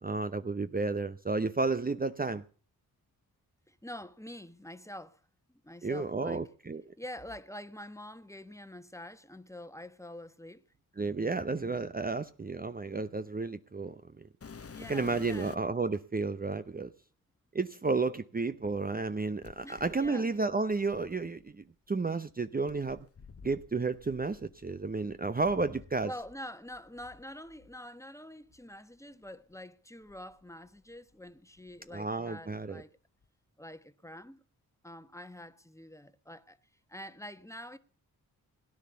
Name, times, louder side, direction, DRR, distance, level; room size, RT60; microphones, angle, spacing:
voice 1, 0.0-2.4 5.8-6.8 11.0-14.3 14.9-16.9 17.5-23.1 23.4-26.1 31.9-32.8, right 3 dB, 25° right, 0.9 m, -32 dB
voice 2, 3.7-5.2 5.5-6.5 7.0-10.6 14.6-15.6 19.6-20.3 26.0-32.9 33.6-34.4 34.8-36.6 36.9-37.8, left 1 dB, 10° left, 1.4 m, -46 dB
sound 1, 14.4-15.8 16.7-16.8 19.4-21.5 22.7-26.4 26.7-27.7 28.5-28.6 29.2-29.3 30.0-31.1 31.4-31.9 33.2-33.3, left 5 dB, 35° left, 1.1 m, -52 dB
17.5 x 10.0 x 7.0 m
supercardioid pair, 40°, 38 cm